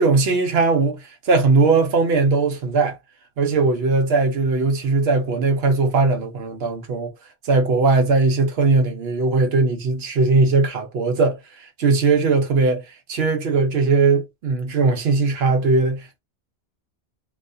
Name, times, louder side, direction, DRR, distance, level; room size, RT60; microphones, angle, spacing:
voice 1, 0.0-3.0 3.4-7.1 7.4-16.2, right 3 dB, 70° right, 0.8 m, -19 dB
2.3 x 2.2 x 2.5 m
omnidirectional pair, 1.1 m